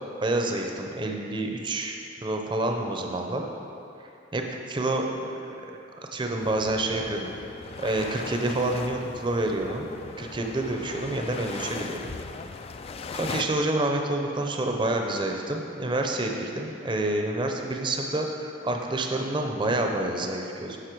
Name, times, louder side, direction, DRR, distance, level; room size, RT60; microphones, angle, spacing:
voice 1, 0.2-2.0 2.2-3.4 4.3-5.3 6.1-7.3 7.8-9.9 10.2-12.0 13.2-20.8, right 2 dB, 25° right, 2 dB, 0.6 m, -28 dB
sound 1, 6.4-13.4, left 4 dB, 35° left, 0.3 m, -38 dB
9.9 x 6.4 x 4.6 m, 2.7 s
head